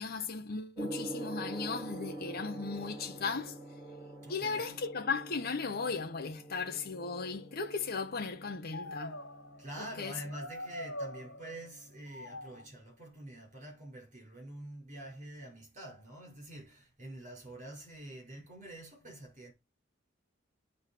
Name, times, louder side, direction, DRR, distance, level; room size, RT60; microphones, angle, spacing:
voice 1, 0.0-3.6 4.3-9.2 10.0-10.1, left 4 dB, 50° left, 1.1 m, -36 dB
Gong, 0.7-12.7, right 1 dB, 15° right, 5.0 m, -47 dB
voice 2, 4.2-4.8 9.6-19.5, right 1 dB, 40° right, 6.2 m, -47 dB
sound 1, 5.4-5.6 6.5-7.8 8.7-9.8 10.3-11.7 12.1-12.6, left 1 dB, 80° left, 1.5 m, -45 dB
9.3 x 4.1 x 6.6 m
head